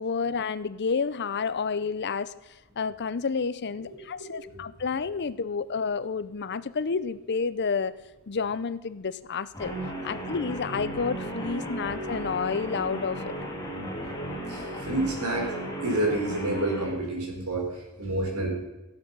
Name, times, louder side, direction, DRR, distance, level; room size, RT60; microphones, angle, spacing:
voice 1, 0.0-2.3 2.8-7.9 8.3-9.7 10.0-13.3, left 5 dB, 50° left, 15 dB, 0.6 m, -30 dB
Guitar, 9.5-17.0, right 1 dB, 15° left, 2.3 m, -35 dB
voice 2, 14.2-15.5 15.8-18.5, right 1 dB, 85° right, 1 dB, 4.5 m, -29 dB
17.0 x 7.6 x 5.5 m, 1.0 s
head